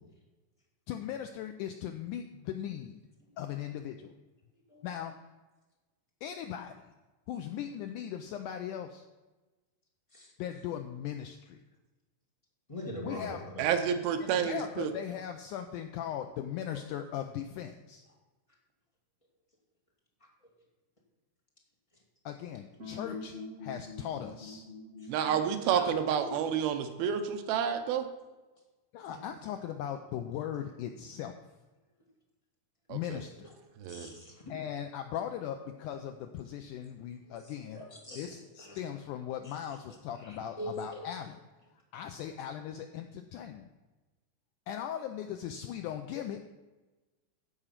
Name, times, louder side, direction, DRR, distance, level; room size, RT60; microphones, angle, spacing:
voice 1, 0.9-3.0 3.4-4.1 4.8-5.2 6.2-6.9 7.3-9.1 10.4-11.6 13.0-13.5 14.2-18.0 22.3-23.4 23.6-24.7 25.7-26.0 28.9-31.3 32.9-33.5 34.5-37.8 38.1-41.4 41.9-43.7 44.7-46.4, left 10 dB, 85° left, 6 dB, 1.8 m, -39 dB
voice 2, 12.7-13.4 26.0-26.3 29.1-29.2 33.9-34.5 37.3-37.4 37.7-38.3 38.6-38.8 40.2-40.8, equal, 20° left, -3 dB, 0.8 m, -42 dB
voice 3, 13.6-14.9 25.1-28.1 32.9-33.2 33.8-34.1, right 8 dB, 85° right, 8 dB, 2.7 m, -29 dB
sound 1, 22.8-26.0, left 4 dB, 30° right, 1.4 m, -44 dB
14.5 x 4.9 x 5.8 m, 1.2 s
omnidirectional pair, 4.2 m